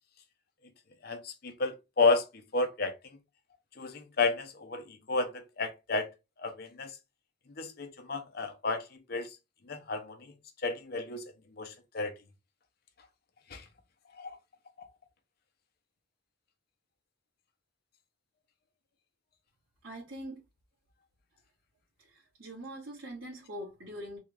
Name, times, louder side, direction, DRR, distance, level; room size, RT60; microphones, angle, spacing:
voice 1, 1.0-2.2 2.5-2.9 3.8-6.1 6.4-7.0 7.6-9.3 9.7-10.3 10.6-11.2 11.6-12.1 13.5-13.6 14.2-14.4 14.8-14.9, left 3 dB, 50° left, 0.7 m, -31 dB
voice 2, 19.8-20.4 22.0-24.2, equal, 90° right, 1.6 m, -43 dB
3.5 x 2.4 x 3.3 m
head